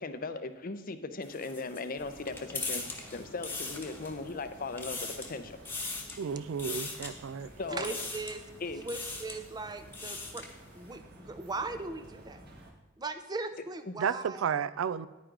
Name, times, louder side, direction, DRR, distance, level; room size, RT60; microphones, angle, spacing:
voice 1, 0.0-2.9 3.1-5.6 7.6-7.9 8.6-8.8 13.9-14.0, left 3 dB, 40° left, 10 dB, 0.6 m, -38 dB
sound 1, 1.2-4.3 4.6-5.3 5.6-6.2 6.6-7.1 7.8-8.4 8.8-9.4 9.8-10.5, left 3 dB, 10° left, 1.1 m, -39 dB
sound 2, 2.0-12.7, right 1 dB, 50° right, 1.5 m, -52 dB
voice 2, 6.2-7.5 14.0-15.1, right 7 dB, 65° right, 16 dB, 0.3 m, -32 dB
voice 3, 7.7-8.5 8.8-10.4 10.7-12.4 13.0-14.4, right 3 dB, 20° right, 10 dB, 0.5 m, -39 dB
10.0 x 9.3 x 3.8 m, 1.2 s
head